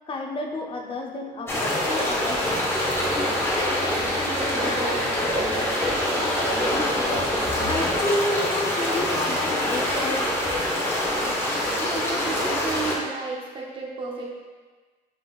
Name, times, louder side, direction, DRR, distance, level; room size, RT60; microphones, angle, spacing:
voice 1, 0.1-2.9 6.9-7.3 7.6-10.4, left 1 dB, 30° left, 1 dB, 0.6 m, -30 dB
sound 1, 1.5-12.9, left 1 dB, 15° left, 1.0 m, -25 dB
sound 2, 1.6-7.8, left 2 dB, 10° right, 1.1 m, -40 dB
voice 2, 3.8-6.4 11.8-14.3, right 3 dB, 30° right, -3 dB, 0.8 m, -34 dB
5.6 x 3.8 x 2.4 m, 1.4 s
cardioid pair, 110°, 17 cm